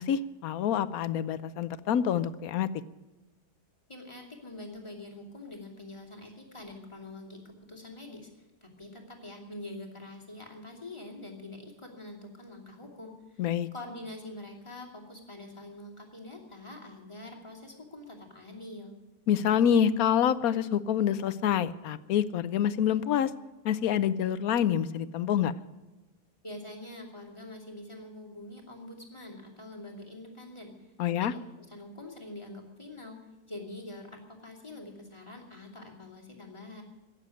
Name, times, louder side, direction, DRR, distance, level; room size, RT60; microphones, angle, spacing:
voice 1, 0.0-2.7 13.4-13.7 19.3-23.3 23.6-25.5 31.0-31.3, left 9 dB, 70° left, 15 dB, 1.1 m, -27 dB
voice 2, 3.9-18.9 26.4-33.2 33.5-36.8, left 2 dB, 20° left, 0 dB, 2.7 m, -45 dB
17.0 x 7.4 x 10.0 m, 1.1 s
omnidirectional pair, 1.7 m